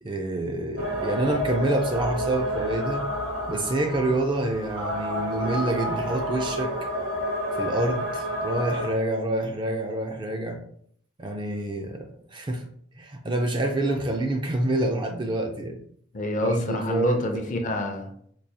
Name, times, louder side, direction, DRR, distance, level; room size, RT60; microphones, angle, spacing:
voice 1, 0.0-3.0 3.5-6.7 7.6-10.6 11.2-12.6 13.0-15.8 16.4-17.5, right 1 dB, 25° right, 3 dB, 0.4 m, -27 dB
sound 1, 0.8-8.9, equal, 90° right, 1.4 m, -29 dB
voice 2, 16.1-18.3, left 1 dB, 40° left, 4 dB, 0.5 m, -27 dB
4.6 x 2.3 x 2.7 m, 0.63 s
head